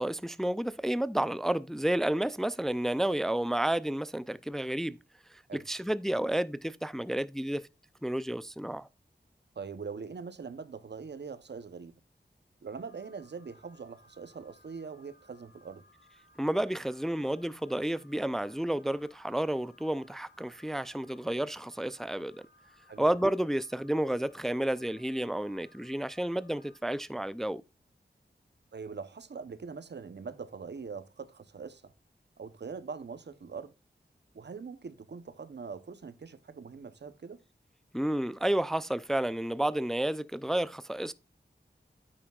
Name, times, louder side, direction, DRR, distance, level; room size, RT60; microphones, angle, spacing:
voice 1, 0.0-5.0 5.3-7.7 8.0-8.9 16.4-22.4 23.0-27.6 37.9-41.1, right 1 dB, ahead, 0.4 m, -31 dB
voice 2, 9.6-11.9 12.6-15.8 22.9-23.0 28.7-31.9 32.4-33.7 34.3-37.4, right 5 dB, 75° right, 0.8 m, -42 dB
Alarm, 12.7-26.8, left 1 dB, 75° left, 2.2 m, -63 dB
9.3 x 8.7 x 2.3 m
wide cardioid pair, 55°, 18 cm